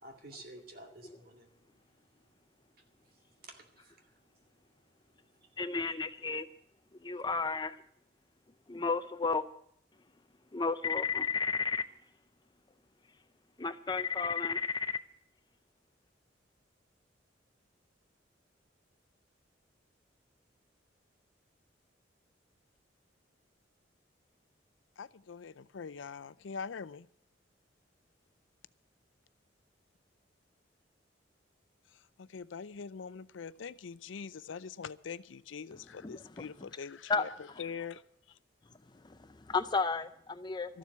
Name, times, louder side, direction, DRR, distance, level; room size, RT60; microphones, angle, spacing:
voice 1, 0.0-1.5 3.4-4.1 5.9-6.0, right 2 dB, 50° right, 3 dB, 2.3 m, -51 dB
voice 2, 5.6-6.5 7.0-7.8 8.7-9.4 10.5-11.8 13.6-15.0 36.0-36.7 37.1-37.6 38.9-40.8, left 4 dB, 25° left, 11 dB, 0.5 m, -33 dB
voice 3, 25.0-27.1 32.2-37.3 37.6-38.0 38.3-38.4 40.7-40.8, left 6 dB, 85° left, 17 dB, 0.5 m, -43 dB
13.5 x 7.4 x 9.5 m, 0.68 s
head